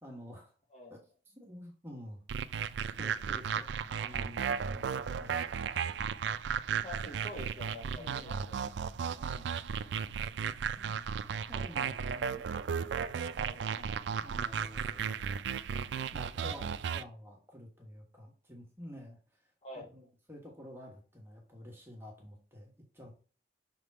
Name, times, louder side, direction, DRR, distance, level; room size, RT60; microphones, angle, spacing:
voice 1, 0.0-0.5 0.9-1.0 1.3-2.2 3.0-5.4 8.0-8.4 9.2-9.6 10.7-11.1 11.5-12.5 13.7-15.5 16.1-19.2 19.9-23.1, equal, 15° right, 0 dB, 1.4 m, -50 dB
sound 1, 2.3-17.0, right 7 dB, 75° right, 0.4 m, -35 dB
voice 2, 6.8-8.6 13.3-13.6 19.6-19.9, left 1 dB, 35° left, 0 dB, 1.8 m, -46 dB
5.8 x 3.7 x 4.6 m, 0.37 s
head